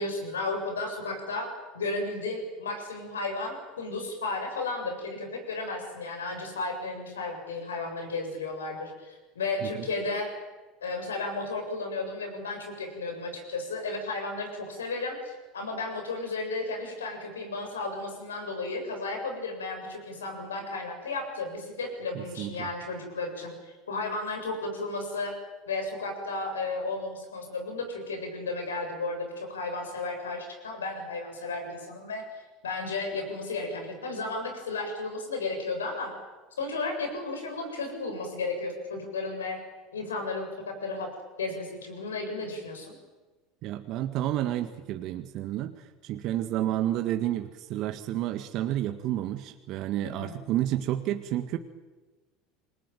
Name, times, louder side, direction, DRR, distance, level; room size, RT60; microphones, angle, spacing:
voice 1, 0.0-1.5 1.7-10.3 10.8-23.5 23.9-25.3 25.7-32.2 32.6-36.1 36.6-39.6 39.9-41.1 41.4-43.0 50.0-50.4, left 3 dB, 80° left, 5 dB, 7.4 m, -33 dB
voice 2, 22.1-22.7 43.6-51.6, right 13 dB, 55° right, 8 dB, 1.7 m, -30 dB
28.0 x 21.0 x 9.3 m, 1.2 s
hypercardioid pair, 75°, 0 cm